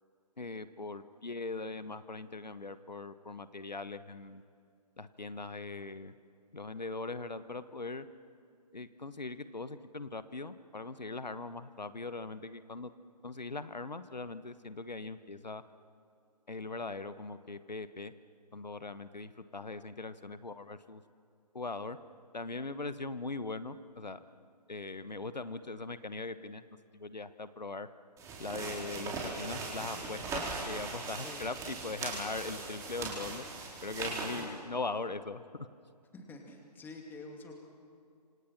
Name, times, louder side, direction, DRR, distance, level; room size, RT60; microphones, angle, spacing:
voice 1, 0.4-4.4 5.0-6.1 6.5-8.1 8.7-12.9 13.2-15.6 16.5-18.1 18.5-21.0 21.5-22.0 22.3-24.2 24.7-26.6 26.9-27.9 28.4-33.4 33.8-35.7, left 3 dB, 90° left, 13 dB, 1.2 m, -40 dB
sound 1, 28.2-34.4, right 3 dB, 15° right, 4.3 m, -39 dB
voice 2, 36.1-37.5, left 3 dB, 10° left, 3 dB, 2.6 m, -48 dB
27.0 x 26.5 x 6.0 m, 2.3 s
figure-of-eight pair, 140°, 21 cm